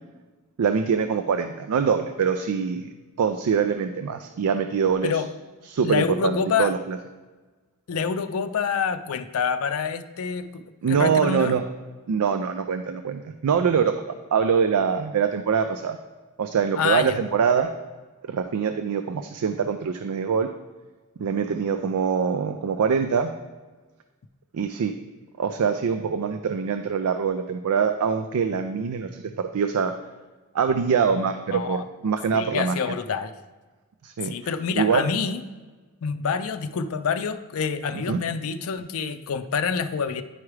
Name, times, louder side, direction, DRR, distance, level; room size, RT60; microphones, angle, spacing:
voice 1, 0.6-2.9 3.2-5.2 5.7-7.0 10.8-11.6 12.1-16.0 16.4-17.7 18.2-20.5 21.2-23.3 24.5-24.9 25.4-29.9 30.5-33.0 34.0-34.3 34.7-35.0 37.9-38.2, right 6 dB, 85° right, 8 dB, 0.4 m, -24 dB
voice 2, 5.8-6.7 7.9-11.5 16.7-17.2 31.5-31.8 32.3-33.3 34.2-35.4 36.0-40.2, left 6 dB, 70° left, 10 dB, 0.4 m, -27 dB
9.8 x 4.8 x 3.2 m, 1.3 s
head